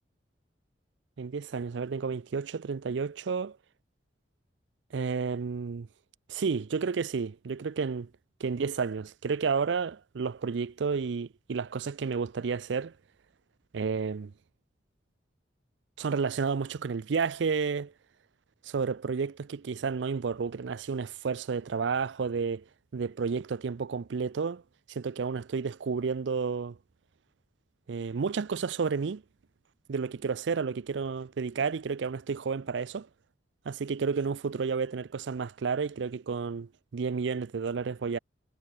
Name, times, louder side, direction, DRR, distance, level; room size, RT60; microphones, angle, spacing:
voice 1, 1.2-3.6 4.9-5.9 6.3-8.1 8.4-12.9 13.7-14.3 16.0-17.9 18.6-22.6 22.9-24.6 24.9-26.8 27.9-29.2 29.9-33.1 33.7-38.2, right 5 dB, 80° right, 0.5 m, -31 dB
head